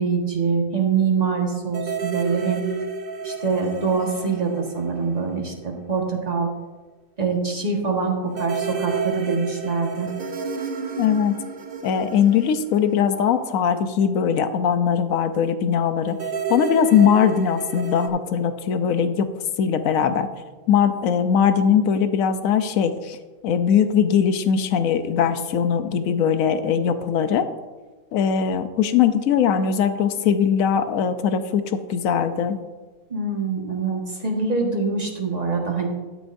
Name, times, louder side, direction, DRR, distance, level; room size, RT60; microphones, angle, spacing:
voice 1, 0.0-2.7 3.2-6.5 7.2-10.1 33.1-35.9, right 4 dB, 25° right, 0 dB, 1.6 m, -24 dB
sound 1, 1.7-5.5 5.8-5.9 8.3-13.7 16.1-18.1, right 5 dB, 50° right, 0.7 m, -31 dB
voice 2, 11.0-11.4 11.8-16.1 16.5-19.3 19.6-20.3 20.7-23.2 23.4-27.5 28.1-32.6, left 7 dB, 65° left, 10 dB, 1.0 m, -20 dB
13.0 x 9.2 x 2.6 m, 1.3 s
omnidirectional pair, 1.7 m